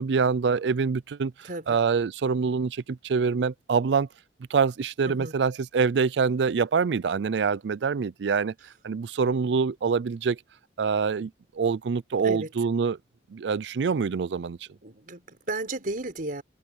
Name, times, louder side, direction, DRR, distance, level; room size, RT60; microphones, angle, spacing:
voice 1, 0.0-4.1 4.5-8.5 8.8-10.4 10.8-13.0 13.3-14.6, right 5 dB, 70° right, 0.4 m, -25 dB
voice 2, 1.4-1.8 5.1-5.3 12.2-12.5 14.8-16.4, right 2 dB, 55° right, 4.5 m, -34 dB
head